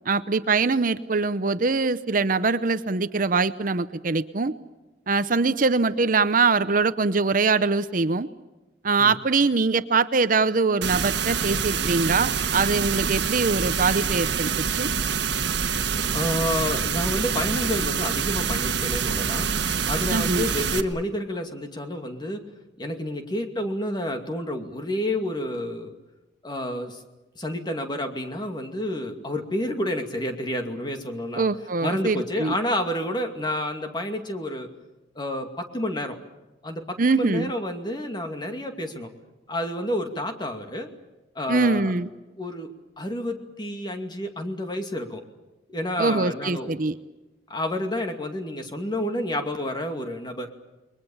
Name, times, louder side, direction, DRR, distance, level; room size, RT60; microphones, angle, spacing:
voice 1, 0.1-4.5 5.1-8.3 8.8-14.9 20.1-20.5 31.4-32.5 37.0-37.5 41.5-42.1 46.0-46.9, right 4 dB, 50° right, 13 dB, 0.8 m, -23 dB
sound 1, 10.8-20.8, right 6 dB, 75° right, 1.4 m, -26 dB
voice 2, 16.1-19.5 19.8-22.4 22.8-25.9 26.4-27.0 27.3-31.4 31.8-34.7 35.2-36.2 36.6-39.1 39.5-40.9 41.3-41.9 42.4-42.7 43.0-45.2 45.7-46.8 47.5-50.5, left 1 dB, 25° left, 5 dB, 2.4 m, -29 dB
29.0 x 22.0 x 7.2 m, 1.0 s
head